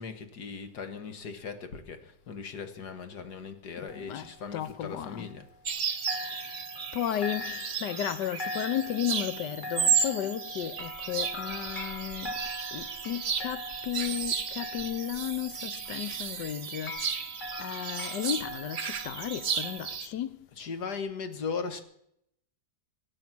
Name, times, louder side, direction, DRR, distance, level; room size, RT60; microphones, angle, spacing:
voice 1, 0.0-5.5 20.5-21.8, left 5 dB, 70° left, 2.1 m, -38 dB
voice 2, 3.8-5.3 6.1-6.7 6.9-12.4 12.7-17.3 17.6-20.5, left 11 dB, 90° left, 1.5 m, -34 dB
sound 1, 3.9-5.8 6.1-20.0, left 1 dB, 30° left, 1.3 m, -42 dB
sound 2, 5.6-20.1, right 7 dB, 50° right, 1.3 m, -34 dB
24.0 x 8.7 x 6.1 m
omnidirectional pair, 1.8 m